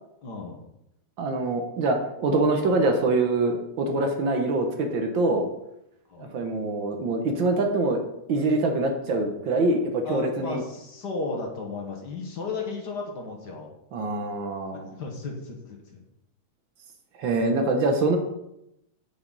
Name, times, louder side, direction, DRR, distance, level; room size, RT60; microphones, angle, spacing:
voice 1, 0.2-0.7 6.1-6.4 10.1-13.7 14.7-16.0, left 3 dB, 55° left, 1 dB, 1.8 m, -34 dB
voice 2, 1.2-5.5 6.2-8.0 8.3-10.6 13.9-14.9 17.2-18.2, right 2 dB, 65° right, 4 dB, 1.7 m, -24 dB
9.4 x 6.2 x 4.0 m, 0.83 s
omnidirectional pair, 2.4 m